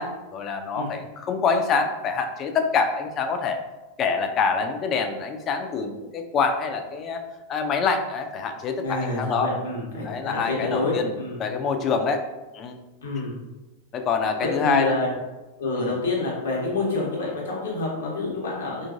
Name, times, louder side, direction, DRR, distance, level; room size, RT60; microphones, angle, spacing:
voice 1, 0.0-3.6 4.0-7.2 7.5-9.5 10.0-11.1 11.4-12.2 12.5-12.8 13.9-14.9 15.8-15.9, left 5 dB, 30° left, 6 dB, 0.3 m, -25 dB
voice 2, 8.8-11.4 13.0-13.4 14.4-15.1 15.6-18.9, left 2 dB, 65° left, -4 dB, 0.9 m, -27 dB
2.9 x 2.5 x 2.5 m, 1.1 s
figure-of-eight pair, 90°, 0 cm